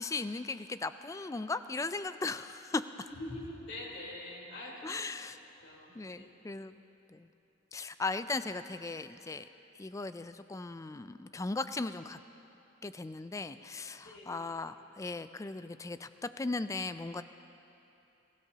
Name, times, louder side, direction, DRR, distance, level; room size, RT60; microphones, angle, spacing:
voice 1, 0.0-3.1 4.8-5.4 6.0-6.8 7.1-7.3 7.7-9.4 9.8-12.2 12.8-17.2, left 3 dB, 15° left, 12 dB, 0.3 m, -37 dB
voice 2, 3.1-5.3 5.6-6.6 13.9-14.5, left 1 dB, 60° left, -4 dB, 3.6 m, -45 dB
23.5 x 16.0 x 2.8 m, 2.9 s
head